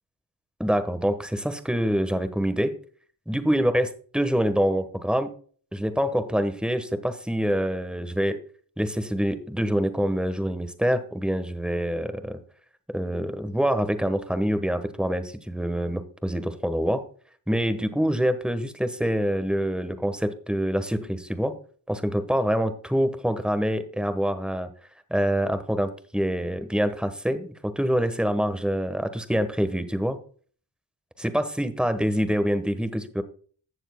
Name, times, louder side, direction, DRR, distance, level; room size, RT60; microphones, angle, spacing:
voice 1, 0.6-2.8 3.3-5.3 5.7-8.4 8.8-12.4 12.9-17.0 17.5-21.6 21.9-24.7 25.1-30.2 31.2-33.2, equal, ahead, 10 dB, 1.2 m, -25 dB
15.5 x 7.2 x 2.2 m, 0.44 s
cardioid pair, 60°, 46 cm